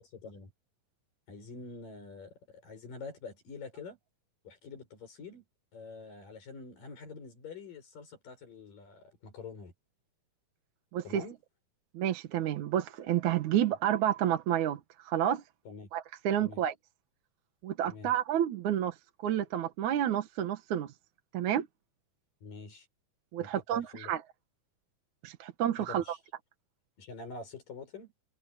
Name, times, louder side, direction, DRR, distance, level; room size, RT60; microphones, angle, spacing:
voice 1, 0.1-0.5 1.3-4.0 4.4-5.4 5.7-9.7 11.0-11.4 15.7-15.9 16.4-16.6 17.9-18.1 22.4-22.9 23.4-24.1 25.8-26.2 27.0-28.1, left 4 dB, 85° left, 7.6 m, -46 dB
voice 2, 10.9-11.2 11.9-15.4 15.9-16.7 17.6-18.9 19.2-20.9 21.3-21.7 23.3-24.2 25.2-26.2, right 11 dB, 70° right, 2.6 m, -30 dB
omnidirectional pair, 3.8 m